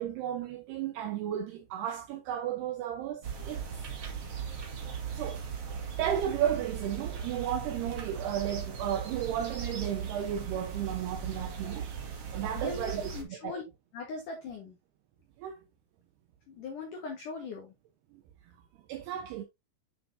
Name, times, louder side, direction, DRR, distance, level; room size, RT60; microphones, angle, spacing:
voice 1, 0.0-3.9 5.1-5.5 6.0-13.6 15.4-15.6 18.1-18.2 18.9-19.4, right 10 dB, 80° right, 2.4 m, -34 dB
sound 1, 3.2-13.2, right 7 dB, 60° right, 1.6 m, -38 dB
voice 2, 12.6-13.6 13.9-14.8 16.5-17.7, left 4 dB, 70° left, 2.0 m, -40 dB
8.7 x 6.2 x 2.7 m
omnidirectional pair, 5.8 m